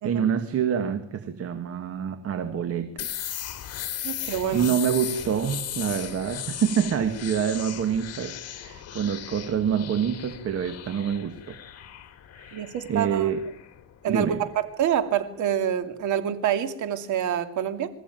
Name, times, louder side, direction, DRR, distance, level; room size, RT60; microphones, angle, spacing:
voice 1, 0.0-3.2 4.5-11.6 12.4-13.4 14.1-14.4, right 8 dB, 50° right, 9 dB, 1.9 m, -27 dB
sound 1, 3.0-14.6, left 11 dB, 55° left, 2.8 m, -37 dB
voice 2, 4.0-4.7 12.5-13.3 14.0-14.3 14.8-17.9, right 9 dB, 70° right, 8 dB, 2.7 m, -27 dB
26.0 x 14.5 x 9.3 m, 0.74 s
cardioid pair, 130°, 31 cm